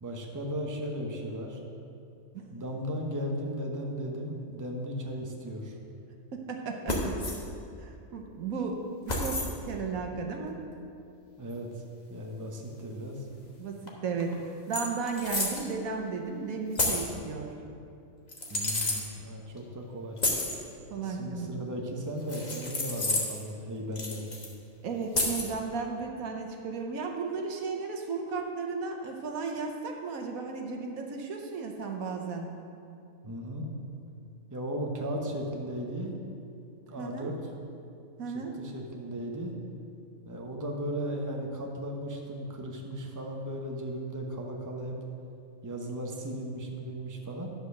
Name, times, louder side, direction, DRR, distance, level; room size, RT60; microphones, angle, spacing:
voice 1, 0.0-1.6 2.5-5.8 11.4-11.8 12.1-13.3 18.5-20.2 21.0-24.2 33.2-33.7 34.5-36.2 36.9-37.4 38.5-39.6 40.3-45.0 45.6-47.5, equal, 15° right, 0 dB, 0.8 m, -36 dB
voice 2, 6.3-7.5 7.8-10.6 13.6-17.5 20.9-21.5 24.8-32.5 37.0-37.3 38.2-38.5, right 4 dB, 85° right, 2 dB, 1.4 m, -35 dB
sound 1, 6.9-7.4 9.1-9.5 11.5-11.6 13.9-14.0 14.2-14.3 14.7-15.6 16.8-17.1 18.3-19.0 20.2-20.6 22.3-23.4 24.0-24.5 25.1-25.5, left 2 dB, 35° left, 1.3 m, -30 dB
10.5 x 5.2 x 6.5 m, 2.6 s
omnidirectional pair, 1.4 m